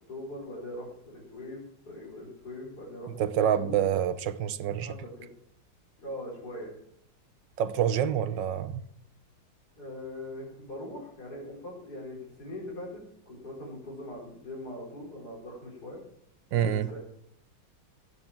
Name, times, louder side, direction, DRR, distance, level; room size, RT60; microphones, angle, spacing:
voice 1, 0.1-3.1 3.4-3.8 4.8-5.0 6.0-6.7 9.8-16.0 16.5-17.0, left 1 dB, 55° left, 5.2 m, -41 dB
voice 2, 3.2-4.9 7.6-8.8 16.5-16.9, right 9 dB, 75° right, 1.6 m, -27 dB
16.5 x 9.4 x 7.4 m
omnidirectional pair, 2.1 m